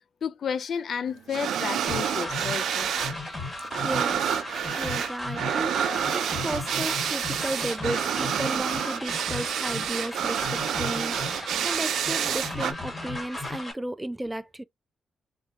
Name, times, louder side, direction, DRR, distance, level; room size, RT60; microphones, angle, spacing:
voice 1, 0.2-2.9 5.9-6.2, left 7 dB, 65° left, 0.4 m, -32 dB
sound 1, 1.3-3.2 3.4-12.7, right 9 dB, 85° right, 0.4 m, -29 dB
sound 2, 1.9-13.7, left 2 dB, 20° left, 1.9 m, -35 dB
voice 2, 3.8-4.4 4.8-5.8 6.1-14.6, right 1 dB, 10° right, 0.4 m, -34 dB
4.3 x 2.3 x 2.8 m
cardioid pair, 90°, 0 cm